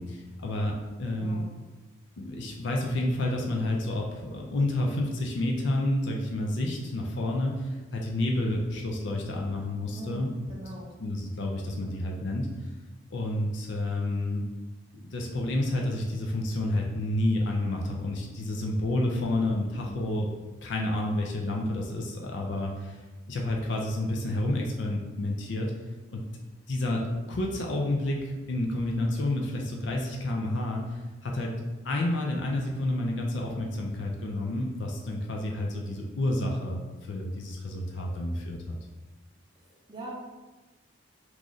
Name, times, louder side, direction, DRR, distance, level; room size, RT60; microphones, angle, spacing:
voice 1, 0.0-1.4 2.2-10.3 10.7-12.5 13.1-14.4 14.9-20.3 20.6-23.0 23.3-25.7 26.1-26.2 26.7-27.0 27.3-31.5 31.8-38.8, left 1 dB, 60° left, 0 dB, 0.4 m, -30 dB
voice 2, 1.0-1.5 9.9-10.9 39.6-40.1, right 1 dB, 25° right, -4 dB, 0.6 m, -42 dB
3.1 x 2.4 x 3.8 m, 1.2 s
head